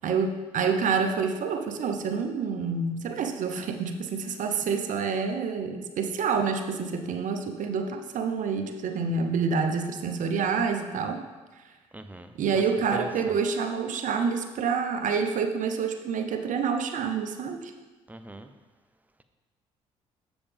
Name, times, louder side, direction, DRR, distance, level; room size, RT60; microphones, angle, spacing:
voice 1, 0.0-11.2 12.3-17.7, right 5 dB, 55° right, 6 dB, 0.8 m, -28 dB
voice 2, 11.9-12.3 12.9-13.1 18.1-18.5, right 1 dB, 10° right, 8 dB, 0.7 m, -39 dB
7.0 x 7.0 x 3.4 m, 1.2 s
hypercardioid pair, 55°, 15 cm